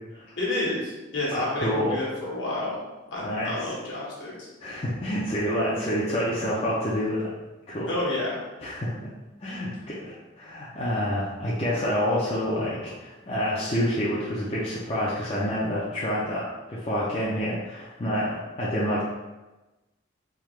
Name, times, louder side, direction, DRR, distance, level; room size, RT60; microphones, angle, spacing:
voice 1, 0.4-2.8 3.1-4.5 7.9-8.4, left 2 dB, 60° left, -5 dB, 1.2 m, -30 dB
voice 2, 1.3-2.0 3.2-3.7 4.6-7.3 7.7-7.9 8.6-9.1 9.4-19.1, equal, 30° left, -8 dB, 0.5 m, -28 dB
3.5 x 2.8 x 3.1 m, 1.1 s
head